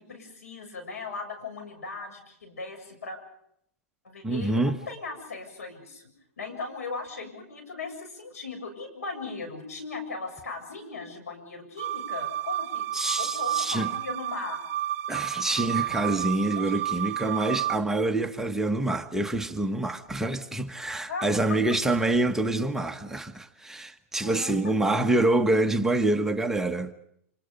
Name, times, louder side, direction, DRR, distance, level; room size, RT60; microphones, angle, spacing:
voice 1, 0.0-3.2 4.0-6.1 6.4-12.9 13.2-14.6 16.6-16.8 21.1-21.3 24.2-24.5, left 4 dB, 85° left, 7.4 m, -38 dB
voice 2, 4.2-4.8 12.9-13.9 15.1-26.9, right 2 dB, 5° right, 1.2 m, -26 dB
sound 1, 11.8-17.7, right 12 dB, 50° right, 0.8 m, -31 dB
28.0 x 26.0 x 5.3 m
hypercardioid pair, 120°, 8 cm